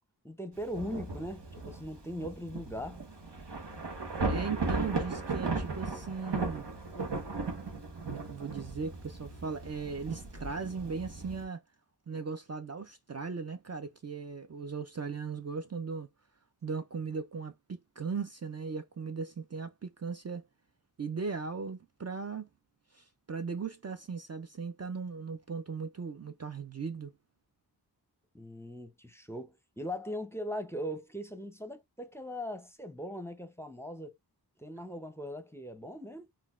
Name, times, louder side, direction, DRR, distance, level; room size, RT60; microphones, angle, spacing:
voice 1, 0.2-3.0 28.3-34.1 34.6-36.3, equal, 5° left, 0.6 m, -40 dB
Thunder / Rain, 0.6-11.4, right 3 dB, 85° right, 1.0 m, -36 dB
voice 2, 4.3-6.7 8.1-11.6 12.1-16.1 16.6-20.5 21.0-22.5 22.9-27.1, right 5 dB, 40° right, 0.4 m, -38 dB
3.9 x 2.3 x 2.4 m
wide cardioid pair, 40°, 40 cm